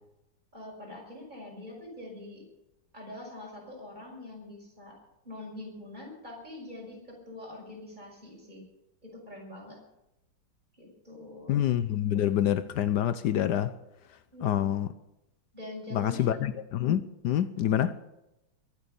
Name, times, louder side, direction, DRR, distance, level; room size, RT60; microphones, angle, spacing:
voice 1, 0.5-2.4 2.9-5.0 5.2-8.6 9.0-9.8 10.7-11.6 14.3-14.8 15.5-16.3 17.6-17.7, left 2 dB, 20° right, 5.9 m, -44 dB
voice 2, 11.5-13.7 14.4-14.9 15.9-18.0, left 11 dB, 65° left, 1.1 m, -27 dB
22.5 x 8.3 x 6.9 m
omnidirectional pair, 2.3 m